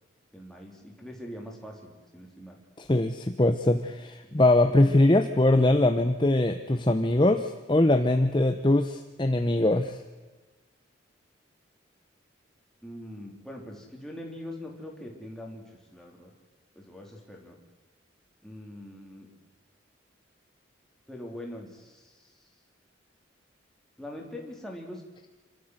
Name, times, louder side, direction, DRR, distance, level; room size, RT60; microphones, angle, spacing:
voice 1, 0.3-2.6 12.8-15.6 15.9-16.3 16.7-17.6 18.4-19.3 21.1-22.3 24.0-25.0, left 1 dB, 5° left, -1 dB, 3.6 m, -42 dB
voice 2, 2.8-10.0, left 1 dB, 25° left, 7 dB, 0.8 m, -22 dB
27.0 x 13.0 x 8.0 m, 1.3 s
head